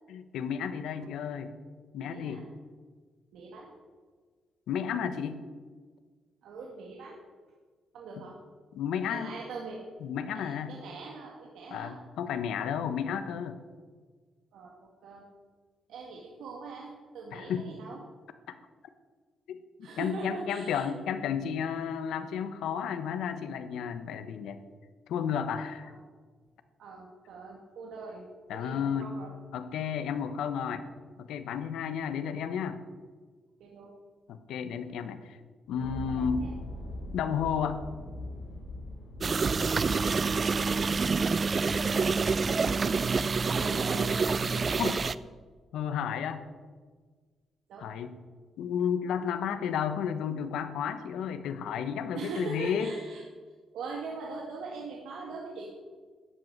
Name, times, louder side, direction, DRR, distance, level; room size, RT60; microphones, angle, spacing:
voice 1, 0.1-1.5 1.9-2.4 4.7-5.4 8.2-8.3 8.7-9.3 10.0-10.7 11.7-13.6 17.3-17.7 18.5-18.6 19.5-24.6 25.1-25.9 28.5-29.1 29.5-30.8 31.2-32.8 34.3-35.4 35.7-36.5 37.1-37.8 44.8-45.0 45.7-46.4 47.8-48.1 48.6-52.9, left 7 dB, 90° left, 10 dB, 1.2 m, -32 dB
voice 2, 1.0-1.3 2.0-2.4 3.3-3.7 6.4-7.2 7.9-8.4 9.1-9.8 10.3-12.0 14.5-15.3 15.9-18.0 19.8-20.9 25.8-26.0 26.8-28.3 28.5-29.3 33.6-33.9 35.8-36.5 40.1-40.9 42.0-42.2 43.6-44.1 47.7-47.9 52.1-53.2 53.7-55.7, right 3 dB, 75° right, -1 dB, 2.2 m, -42 dB
sound 1, 35.7-45.3, left 1 dB, 55° left, 5.7 m, -43 dB
sound 2, 39.2-45.1, right 4 dB, 25° right, 0.4 m, -27 dB
13.5 x 8.2 x 9.5 m, 1.5 s
cardioid pair, 180°, 0 cm